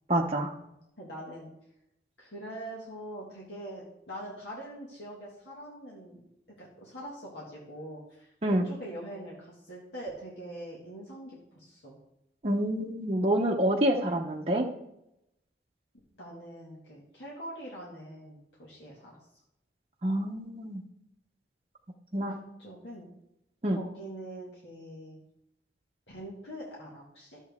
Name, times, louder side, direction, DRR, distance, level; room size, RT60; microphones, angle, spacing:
voice 1, 0.1-0.5 8.4-8.7 12.4-14.7 20.0-20.8 22.1-22.4 23.6-23.8, right 1 dB, 35° right, -1 dB, 0.7 m, -27 dB
voice 2, 1.0-1.5 2.2-6.2 6.6-12.0 16.2-19.2 22.3-23.1 23.7-25.2 26.1-27.4, right 1 dB, 75° left, -4 dB, 1.9 m, -43 dB
11.5 x 7.3 x 3.6 m, 0.85 s
head